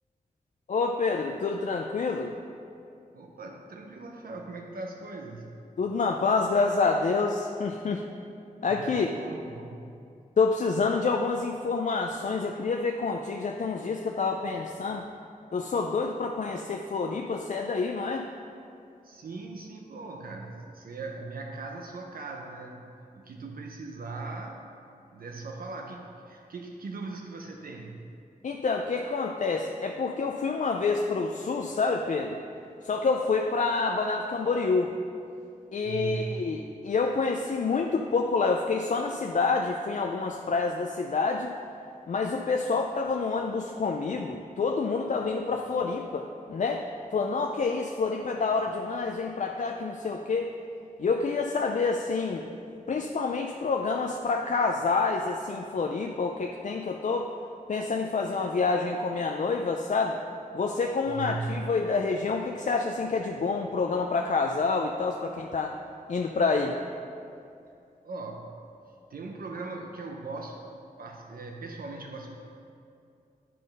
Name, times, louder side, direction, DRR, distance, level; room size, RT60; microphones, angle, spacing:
voice 1, 0.7-2.4 5.8-8.0 8.6-9.1 10.4-15.0 15.5-18.3 28.4-32.4 32.8-34.9 35.7-41.5 42.1-46.9 47.1-50.5 51.0-52.4 52.9-57.3 57.7-60.2 60.5-65.8 66.1-66.8, left 4 dB, 55° left, 2 dB, 0.4 m, -28 dB
voice 2, 3.1-5.5 8.7-10.0 19.0-24.7 25.1-28.1 35.8-36.4 61.1-61.7 68.0-68.5 69.1-70.6 71.0-72.4, right 3 dB, 75° right, 1 dB, 0.6 m, -39 dB
9.2 x 3.9 x 5.2 m, 2.5 s
wide cardioid pair, 70°, 15 cm